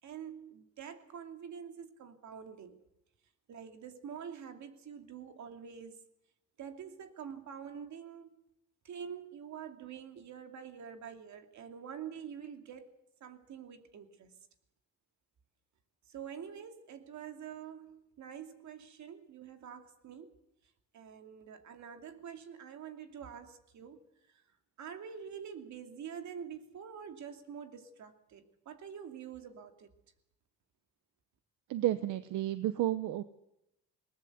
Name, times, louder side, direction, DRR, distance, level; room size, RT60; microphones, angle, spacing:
voice 1, 0.0-2.8 3.5-6.0 6.6-8.3 8.8-12.9 13.2-14.4 16.1-20.3 20.6-29.9, right 7 dB, 65° right, 6 dB, 2.6 m, -46 dB
voice 2, 31.7-33.2, right 14 dB, 85° right, 12 dB, 0.9 m, -31 dB
20.5 x 19.0 x 8.1 m, 0.82 s
cardioid pair, 90°, 30 cm